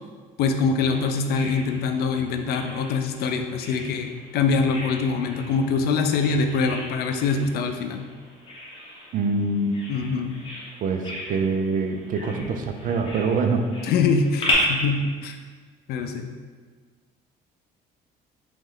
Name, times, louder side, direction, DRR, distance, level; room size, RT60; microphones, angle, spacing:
voice 1, 0.4-8.1 9.9-10.3 13.9-15.4 15.9-16.3, left 4 dB, 70° left, 7 dB, 0.4 m, -24 dB
Bird vocalization bird call bird song, 0.9-14.5, left 1 dB, 30° left, 1.2 m, -37 dB
voice 2, 9.1-9.9 10.8-13.6, right 4 dB, 55° right, 5 dB, 0.4 m, -25 dB
3.1 x 3.0 x 3.7 m, 1.5 s
cardioid pair, 110°, 17 cm